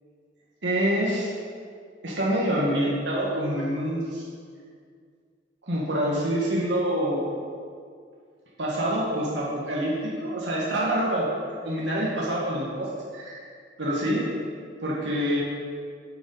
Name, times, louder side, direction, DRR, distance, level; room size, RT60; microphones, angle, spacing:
voice 1, 0.6-1.3 2.0-4.2 5.7-7.3 8.6-11.3 11.6-13.4 13.8-14.3 14.8-15.4, right 1 dB, 65° right, -5 dB, 1.6 m, -26 dB
8.0 x 6.7 x 5.4 m, 2.1 s
head